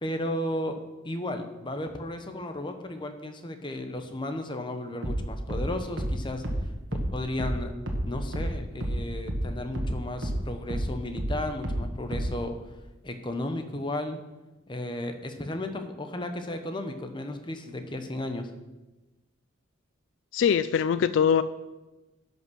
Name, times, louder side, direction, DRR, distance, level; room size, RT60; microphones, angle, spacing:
voice 1, 0.0-0.8 1.0-6.4 7.1-7.7 8.0-12.6 13.0-14.2 14.7-18.5, left 1 dB, 25° left, 7 dB, 0.9 m, -34 dB
sound 1, 5.0-10.0 10.2-12.5, right 1 dB, 65° right, 1.6 m, -30 dB
voice 2, 20.3-21.4, left 7 dB, 70° left, 14 dB, 0.3 m, -22 dB
11.0 x 5.4 x 6.3 m, 1.1 s
head